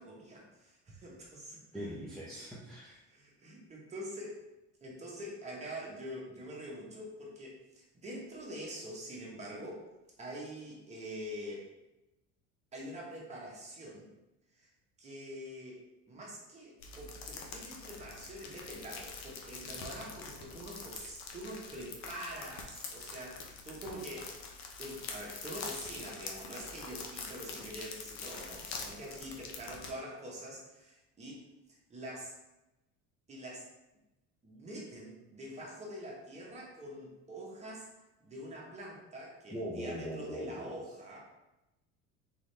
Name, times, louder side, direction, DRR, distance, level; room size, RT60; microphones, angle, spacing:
voice 1, 0.0-1.8 3.1-4.4 4.8-9.9 10.2-11.7 12.7-14.1 14.5-14.7 15.0-15.8 16.1-24.4 24.8-31.4 31.7-32.3 33.3-33.6 34.4-37.9 38.2-41.3, equal, 20° right, -3 dB, 1.1 m, -45 dB
voice 2, 1.7-3.0 39.5-40.8, equal, ahead, -8 dB, 0.7 m, -41 dB
sound 1, 16.8-29.9, left 4 dB, 55° left, 0.8 m, -45 dB
3.8 x 3.8 x 3.3 m, 0.96 s
cardioid pair, 140°, 33 cm